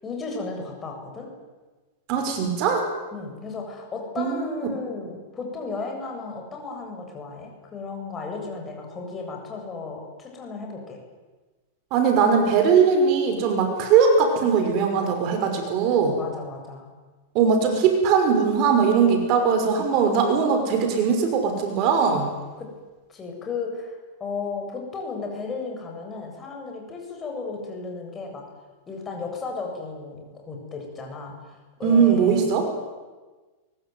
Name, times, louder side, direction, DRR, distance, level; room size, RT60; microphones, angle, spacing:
voice 1, 0.0-1.3 3.1-11.0 16.2-16.9 22.6-22.7 23.1-28.4 28.9-32.5, left 4 dB, 20° left, 1 dB, 7.8 m, -34 dB
voice 2, 2.1-2.9 4.2-4.4 11.9-16.2 17.3-22.3 31.8-32.7, right 6 dB, 40° right, 5 dB, 5.7 m, -20 dB
24.0 x 23.5 x 9.5 m, 1.3 s
supercardioid pair, 145°, 0 cm